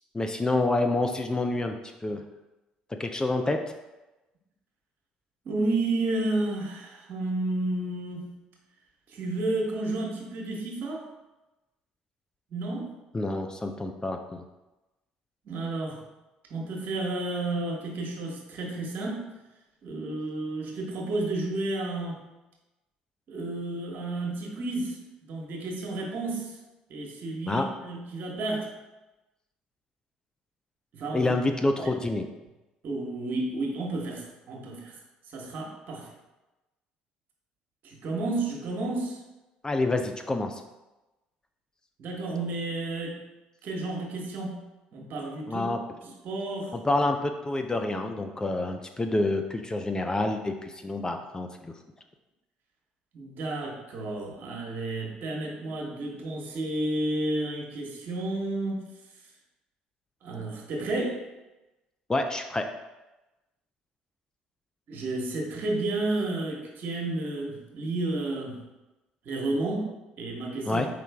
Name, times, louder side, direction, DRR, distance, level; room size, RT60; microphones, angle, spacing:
voice 1, 0.1-1.8 2.0-2.2 3.0-3.6 13.1-14.4 27.5-27.7 31.1-32.3 39.6-40.6 45.5-45.8 46.7-51.7 62.1-62.6 70.7-70.9, left 2 dB, 20° left, 5 dB, 0.4 m, -27 dB
voice 2, 5.4-8.4 9.1-11.1 12.5-12.9 15.4-16.0 16.5-19.3 19.8-22.2 23.3-25.0 25.3-26.5 26.9-28.7 30.9-31.3 31.8-32.0 32.8-34.9 35.3-36.1 37.8-39.2 42.0-43.2 43.6-44.6 44.9-45.7 46.0-46.7 53.1-58.8 60.2-61.2 64.9-68.6 69.2-70.8, right 2 dB, 55° right, -1 dB, 1.1 m, -31 dB
4.8 x 3.1 x 3.4 m, 1.0 s
hypercardioid pair, 55°, 4 cm